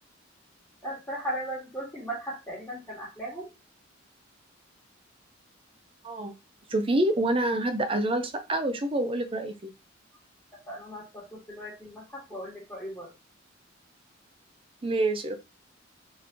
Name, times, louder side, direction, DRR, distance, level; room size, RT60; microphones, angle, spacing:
voice 1, 0.8-3.5 10.7-13.1, right 1 dB, 10° left, 1.7 m, -37 dB
voice 2, 6.7-9.7 14.8-15.4, right 1 dB, 25° right, 0.6 m, -27 dB
4.1 x 3.3 x 2.8 m
head